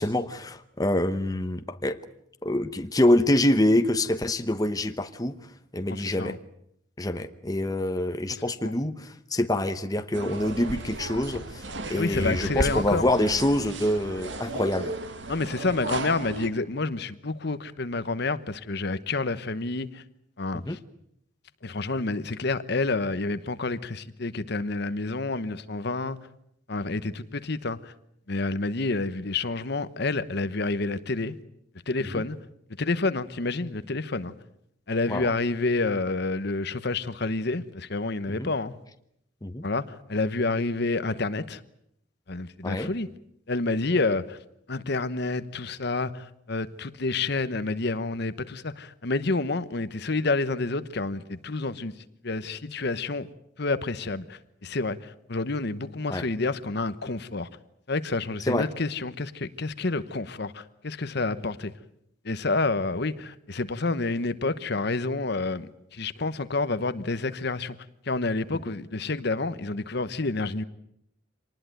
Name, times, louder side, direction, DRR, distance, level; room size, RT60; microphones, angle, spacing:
voice 1, 0.0-2.0 2.4-5.4 5.7-6.4 7.0-14.9 20.5-20.8 32.0-32.2 35.1-35.3 38.3-38.5 39.4-39.7 42.6-42.9 56.1-56.3 58.5-58.7, left 1 dB, 20° left, 1.0 m, -26 dB
voice 2, 5.8-6.4 8.6-8.7 12.0-13.0 15.3-20.0 20.4-20.8 21.6-26.2 26.7-27.9 28.3-31.4 31.9-32.4 32.8-34.3 34.9-38.7 39.6-41.6 42.3-43.1 43.5-44.4 44.7-51.9 52.2-53.3 53.6-57.5 57.9-61.7 62.2-67.7 68.1-70.6, left 3 dB, 55° left, 1.1 m, -29 dB
sound 1, 10.1-16.5, right 2 dB, 65° right, 2.0 m, -34 dB
26.0 x 19.5 x 9.1 m
head